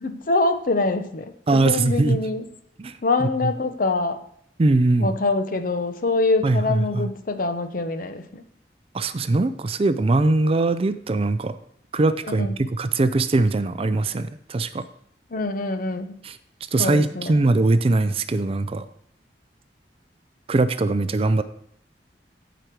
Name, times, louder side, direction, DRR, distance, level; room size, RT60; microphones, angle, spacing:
voice 1, 0.0-2.5 3.0-4.2 5.0-8.4 12.2-12.6 15.3-16.1 16.8-17.4, left 3 dB, 50° left, 9 dB, 0.8 m, -25 dB
voice 2, 1.5-2.2 2.8-3.5 4.6-5.2 6.4-7.1 8.9-11.6 11.9-14.9 16.2-16.4 16.7-18.9 20.5-21.4, right 2 dB, 35° right, 12 dB, 0.4 m, -21 dB
13.5 x 5.0 x 4.6 m, 0.67 s
head